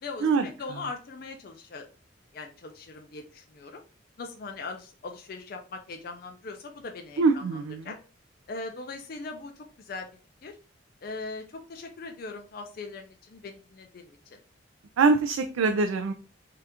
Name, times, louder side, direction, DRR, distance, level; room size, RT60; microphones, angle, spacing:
voice 1, 0.0-1.9 2.3-3.8 4.2-8.0 8.5-10.1 10.4-10.5 11.0-14.4, left 3 dB, 50° left, 4 dB, 0.4 m, -40 dB
voice 2, 7.2-7.8 15.0-16.1, right 4 dB, 85° right, 6 dB, 0.3 m, -23 dB
2.8 x 2.4 x 3.4 m, 0.36 s
head